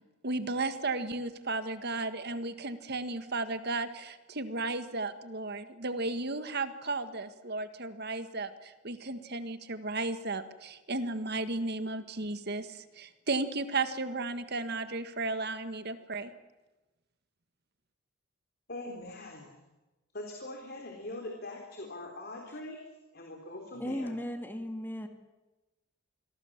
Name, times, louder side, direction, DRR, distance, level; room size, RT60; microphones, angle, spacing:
voice 1, 0.2-16.3, right 3 dB, 50° right, 10 dB, 1.8 m, -34 dB
voice 2, 18.7-19.6 20.1-22.8 23.1-24.1, left 2 dB, 45° left, 2 dB, 3.7 m, -42 dB
voice 3, 23.7-25.1, left 1 dB, 10° left, 6 dB, 1.9 m, -36 dB
28.0 x 22.0 x 7.4 m, 1.1 s
head